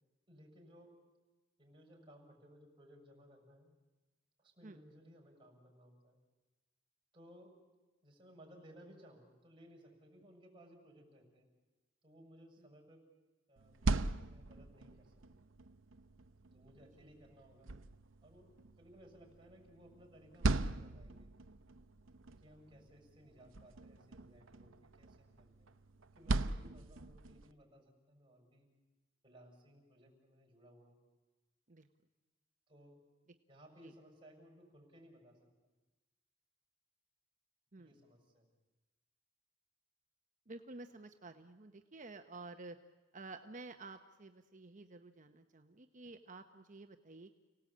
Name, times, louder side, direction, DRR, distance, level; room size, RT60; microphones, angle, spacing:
voice 1, 0.3-0.9 1.6-3.7 4.4-6.2 7.1-7.6 8.0-11.5 12.0-13.0 13.5-15.1 16.5-17.7 18.2-21.3 22.4-25.7 26.2-28.7 29.2-31.0 32.7-33.0 33.5-35.5 37.8-38.5, equal, 25° right, 0 dB, 6.8 m, -60 dB
sound 1, 13.6-27.5, right 2 dB, 85° right, 0.8 m, -41 dB
voice 2, 40.5-42.8 43.1-47.3, right 3 dB, 40° right, 7 dB, 1.0 m, -51 dB
30.0 x 18.5 x 8.6 m, 1.2 s
head